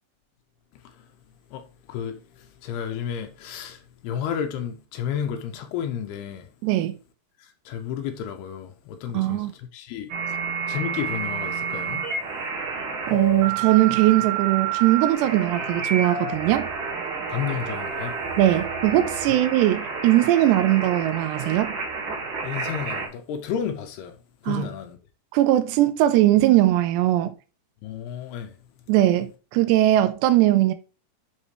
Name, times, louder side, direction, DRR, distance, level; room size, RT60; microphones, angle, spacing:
voice 1, 1.9-6.5 7.7-9.5 9.7-10.1 10.7-12.1 17.3-18.1 22.4-24.2 24.4-25.0 27.8-28.5, left 8 dB, 75° left, 2.7 m, -32 dB
voice 2, 6.6-7.0 9.1-9.5 13.1-16.7 18.4-21.8 24.5-24.7 25.3-27.4 28.9-30.7, right 14 dB, 85° right, 2.8 m, -20 dB
sound 1, 10.1-23.1, right 5 dB, 55° right, 3.0 m, -29 dB
10.0 x 4.3 x 3.2 m
omnidirectional pair, 4.9 m